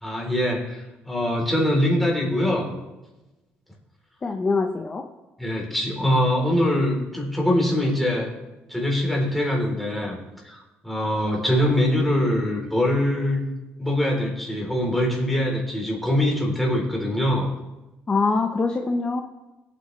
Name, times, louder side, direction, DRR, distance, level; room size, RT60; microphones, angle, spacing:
voice 1, 0.0-2.8 5.4-8.3 8.7-10.2 10.4-13.4 13.8-17.5, left 1 dB, ahead, -2 dB, 3.5 m, -23 dB
voice 2, 4.2-5.1 18.1-19.2, left 4 dB, 25° left, 3 dB, 0.9 m, -23 dB
22.0 x 8.6 x 3.3 m, 1.1 s
cardioid pair, 135°, 4 cm